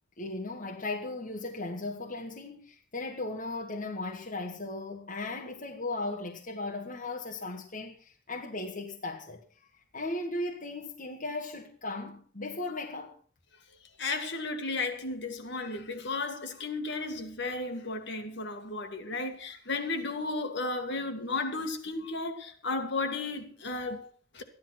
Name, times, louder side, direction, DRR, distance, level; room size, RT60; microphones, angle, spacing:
voice 1, 0.2-9.4 9.9-13.1, left 2 dB, 45° left, 1.7 m, -37 dB
voice 2, 14.0-24.4, left 3 dB, 60° left, 2.1 m, -34 dB
14.5 x 11.0 x 6.0 m
head